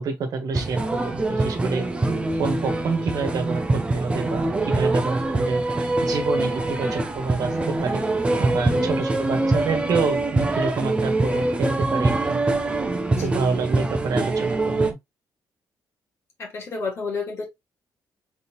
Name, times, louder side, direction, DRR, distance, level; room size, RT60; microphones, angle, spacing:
voice 1, 0.0-1.9 2.3-5.6 6.0-8.0 8.4-12.5 13.2-15.0, right 4 dB, 60° right, 1.3 m, -28 dB
sound 1, 0.5-14.9, right 2 dB, 15° right, 0.7 m, -24 dB
voice 2, 8.7-9.1 13.1-13.3 16.4-17.4, left 4 dB, 40° left, 2.0 m, -31 dB
3.9 x 3.6 x 3.0 m
wide cardioid pair, 180°, 7 cm